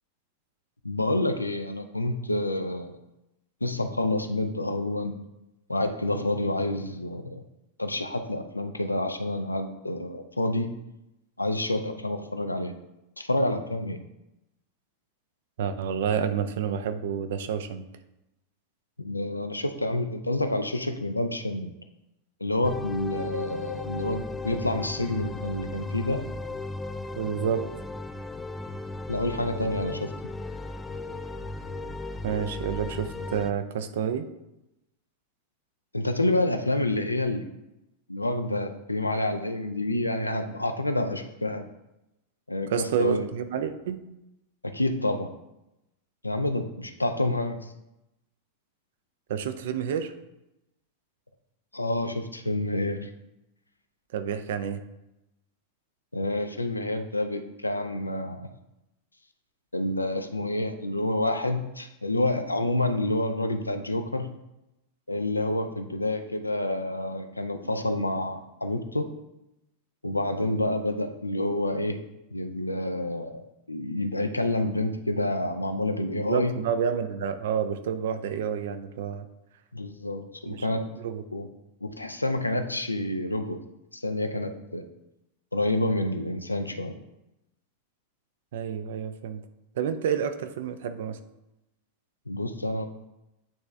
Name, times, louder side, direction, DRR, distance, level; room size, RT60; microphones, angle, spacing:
voice 1, 0.8-3.0 3.6-5.1 5.7-7.4 7.8-10.7 11.4-12.7 13.2-14.0 19.0-21.7 22.4-26.2 29.1-30.3 35.9-37.5 38.1-41.6 42.5-43.3 44.6-45.3 46.2-47.7 51.7-53.1 56.1-58.5 59.7-64.3 65.1-69.1 70.0-72.0 72.3-76.5 79.7-80.8 81.3-81.5 81.8-83.6 83.9-84.8 85.5-86.9 92.3-92.8, left 1 dB, 85° left, 7 dB, 0.5 m, -28 dB
voice 2, 15.6-17.8 27.2-27.6 32.2-34.3 42.7-44.0 49.3-50.1 54.1-54.8 76.1-79.3 80.5-80.7 81.0-81.2 88.5-89.4 89.8-91.2, right 7 dB, 55° right, 10 dB, 0.5 m, -29 dB
sound 1, 22.6-33.5, left 2 dB, 10° left, 0.3 m, -36 dB
8.7 x 3.4 x 3.2 m, 0.91 s
figure-of-eight pair, 90°, 0 cm